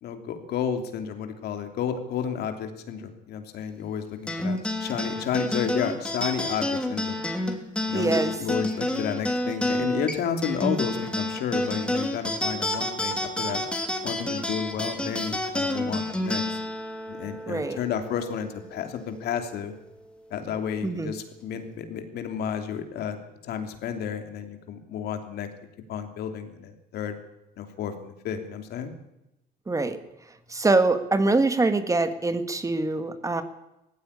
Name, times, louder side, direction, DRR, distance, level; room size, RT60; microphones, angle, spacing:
voice 1, 0.0-7.2 7.9-13.6 14.0-16.6 17.1-19.7 20.3-23.2 23.4-25.5 25.9-27.1 27.6-28.9, left 8 dB, 70° left, 6 dB, 3.0 m, -31 dB
sound 1, 4.3-19.0, left 1 dB, 5° left, 2.9 m, -29 dB
voice 2, 7.9-8.4 17.5-17.8 20.8-21.1 29.7-30.0 30.5-33.4, right 3 dB, 20° right, 10 dB, 1.7 m, -24 dB
17.5 x 15.5 x 9.8 m, 0.93 s
cardioid pair, 110°, 17 cm